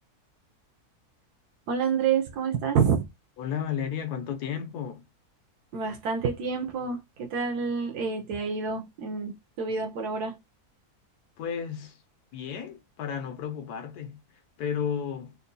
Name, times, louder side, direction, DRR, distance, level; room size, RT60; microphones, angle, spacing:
voice 1, 1.7-3.0 5.7-10.4, right 6 dB, 90° right, 1.4 m, -28 dB
voice 2, 3.4-5.0 11.4-12.0 12.3-14.2 14.6-15.4, left 8 dB, 85° left, 1.4 m, -33 dB
4.2 x 2.2 x 3.8 m
omnidirectional pair, 1.6 m